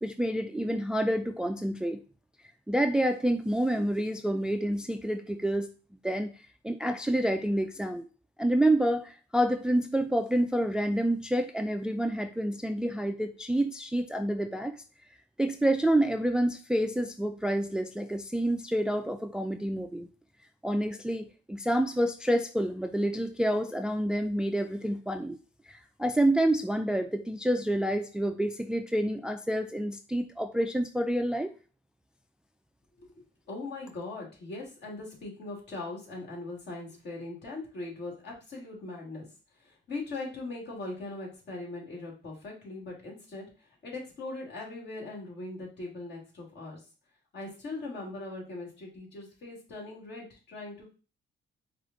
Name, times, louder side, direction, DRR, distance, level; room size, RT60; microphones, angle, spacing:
voice 1, 0.0-2.0 2.7-5.7 6.0-6.3 6.6-8.1 8.4-14.7 15.4-20.1 20.6-25.4 25.7-31.5, right 1 dB, 5° right, 7 dB, 0.3 m, -28 dB
voice 2, 33.5-39.3 39.6-43.5 43.8-46.8 47.3-50.9, left 2 dB, 60° left, -3 dB, 2.2 m, -40 dB
4.8 x 2.4 x 3.9 m, 0.35 s
cardioid pair, 90°, 20 cm